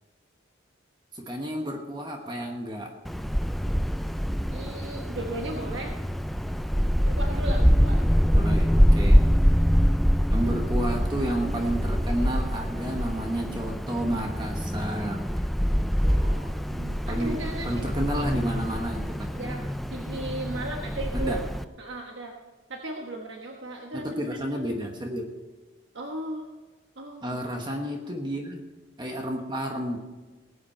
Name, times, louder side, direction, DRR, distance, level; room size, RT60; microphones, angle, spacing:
voice 1, 1.1-3.0 8.3-9.3 10.3-15.5 16.0-16.6 17.1-19.7 21.1-21.4 23.9-25.2 27.2-28.6 29.0-30.1, right 1 dB, 25° right, 2 dB, 1.2 m, -31 dB
Wind, 3.0-21.6, equal, ahead, 0.3 m, -25 dB
voice 2, 4.5-5.9 7.1-8.0 16.5-17.9 18.2-18.3 19.3-19.6 19.9-21.4 21.8-22.3 22.7-24.4 25.9-26.5 27.0-27.2, right 1 dB, 75° right, 1 dB, 1.2 m, -36 dB
19.5 x 8.3 x 4.4 m, 1.2 s
head